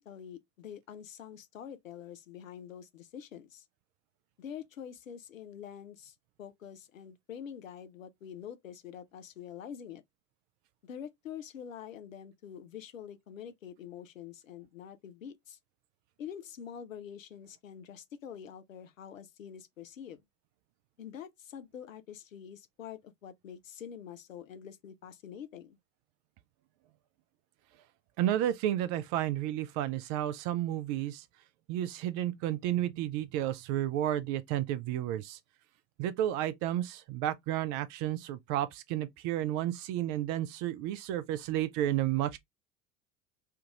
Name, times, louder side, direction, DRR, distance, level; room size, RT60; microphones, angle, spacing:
voice 1, 0.0-3.6 4.4-10.0 10.8-15.6 16.2-20.2 21.0-25.8, left 8 dB, 85° left, 0.6 m, -46 dB
voice 2, 28.2-31.2 31.7-35.4 36.0-42.4, right 12 dB, 50° right, 0.6 m, -32 dB
3.4 x 2.4 x 2.9 m
figure-of-eight pair, 70°, 39 cm